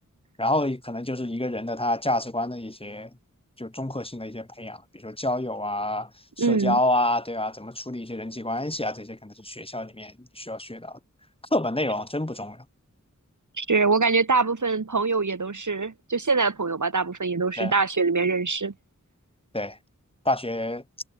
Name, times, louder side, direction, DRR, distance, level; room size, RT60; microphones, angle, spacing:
voice 1, 0.4-3.1 3.6-6.1 6.4-11.0 11.5-12.6 17.6-17.7 19.5-19.8 20.3-20.8, left 1 dB, 20° left, 2.0 m, -28 dB
voice 2, 6.4-6.8 13.6-18.7, right 4 dB, 70° right, 2.2 m, -24 dB
wide cardioid pair, 45°, 31 cm